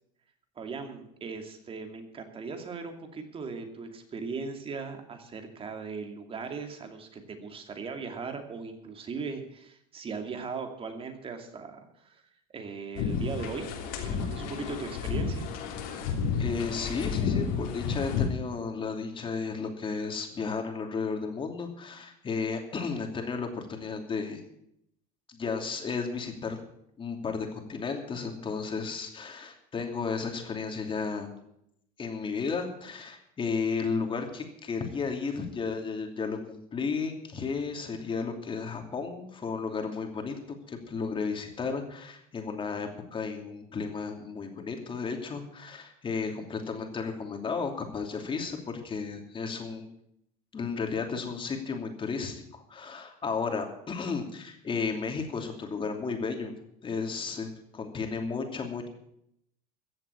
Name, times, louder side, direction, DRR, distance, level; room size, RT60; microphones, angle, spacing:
voice 1, 0.6-12.3 12.5-13.7 14.0-15.5, right 4 dB, 30° right, 5 dB, 2.6 m, -38 dB
sound 1, 13.0-18.3, left 6 dB, 70° left, 3.2 m, -31 dB
voice 2, 16.4-24.4 25.3-26.6 27.0-31.3 32.0-49.9 50.5-56.5 56.8-58.9, left 5 dB, 25° left, 4 dB, 2.8 m, -33 dB
15.0 x 7.7 x 8.5 m, 0.75 s
supercardioid pair, 115°, 19 cm